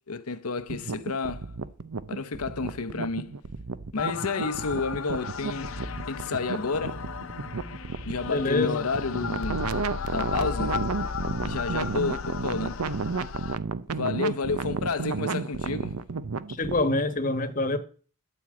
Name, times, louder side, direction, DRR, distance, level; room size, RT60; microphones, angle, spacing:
voice 1, 0.1-1.5 2.1-3.4 3.9-5.8 6.1-7.1 8.0-9.6 10.1-10.8 11.4-12.8 13.9-16.0, left 4 dB, 85° left, 0.9 m, -30 dB
sound 1, 0.6-16.8, right 4 dB, 85° right, 0.7 m, -32 dB
sound 2, 4.0-13.6, left 5 dB, 65° left, 0.6 m, -35 dB
voice 2, 8.3-8.8 16.6-17.8, left 2 dB, 35° left, 1.1 m, -25 dB
12.5 x 4.7 x 8.6 m
head